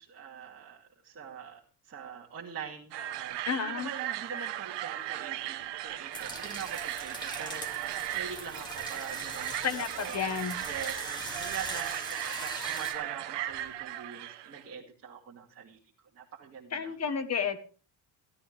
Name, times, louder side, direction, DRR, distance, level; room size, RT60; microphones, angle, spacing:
voice 1, 0.0-10.3 10.6-15.8 16.1-16.9, right 7 dB, 30° right, -3 dB, 2.4 m, -44 dB
sound 1, 2.9-14.6, right 14 dB, 75° right, 1.1 m, -37 dB
voice 2, 3.5-3.9 9.6-10.6 16.7-17.6, left 7 dB, 35° left, 10 dB, 1.3 m, -31 dB
sound 2, 6.1-12.9, left 1 dB, 10° left, 2.3 m, -42 dB
15.0 x 13.5 x 3.4 m, 0.37 s
cardioid pair, 155°, 42 cm